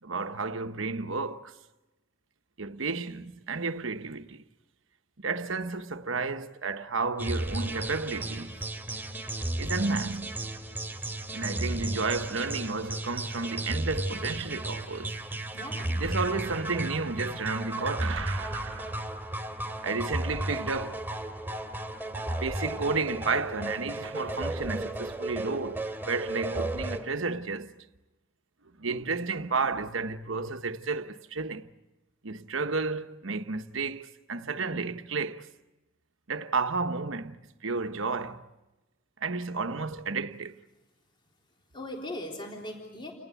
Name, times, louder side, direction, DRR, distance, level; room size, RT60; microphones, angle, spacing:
voice 1, 0.0-1.5 2.6-4.4 5.2-8.6 9.6-10.3 11.3-15.2 16.0-19.0 19.8-21.0 22.4-27.7 28.8-31.7 32.2-35.4 36.3-38.5 39.2-40.6, right 4 dB, 65° right, 1.1 m, -32 dB
sound 1, 7.2-27.0, right 1 dB, 10° right, 2.7 m, -34 dB
voice 2, 15.5-16.0 41.7-43.1, left 1 dB, 25° left, 3.8 m, -39 dB
30.0 x 19.5 x 8.3 m
head